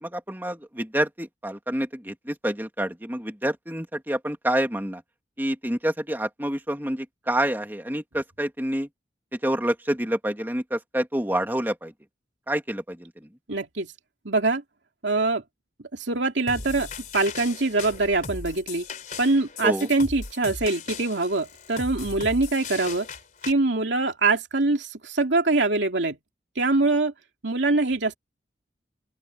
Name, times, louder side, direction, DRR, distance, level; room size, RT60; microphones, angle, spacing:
voice 1, 0.0-5.0 5.4-8.9 9.3-11.9 12.5-13.3 19.6-19.9, right 1 dB, 10° right, 2.3 m, -28 dB
voice 2, 13.5-13.9 14.2-14.6 15.0-15.4 15.9-16.9 17.1-18.9 19.2-23.1 23.5-26.2 26.6-27.1 27.4-28.2, right 3 dB, 85° right, 2.7 m, -23 dB
sound 1, 16.5-23.5, left 4 dB, 45° left, 3.6 m, -38 dB
open air
head